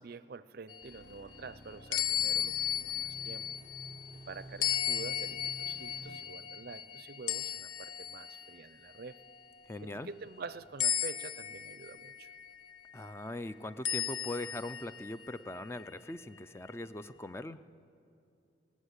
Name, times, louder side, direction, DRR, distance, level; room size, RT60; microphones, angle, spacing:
voice 1, 0.0-3.5 4.3-9.2 9.8-12.3, right 4 dB, 55° right, 15 dB, 0.5 m, -47 dB
sound 1, 0.7-4.1 4.6-8.5 9.0-9.4 10.8-12.9 13.8-15.8, left 10 dB, 85° left, 0.8 m, -35 dB
sound 2, 0.8-6.2, right 1 dB, 45° left, 5.2 m, -52 dB
voice 2, 9.7-10.1 12.9-17.6, left 1 dB, 15° left, 12 dB, 0.4 m, -41 dB
19.5 x 17.0 x 8.2 m, 2.6 s
head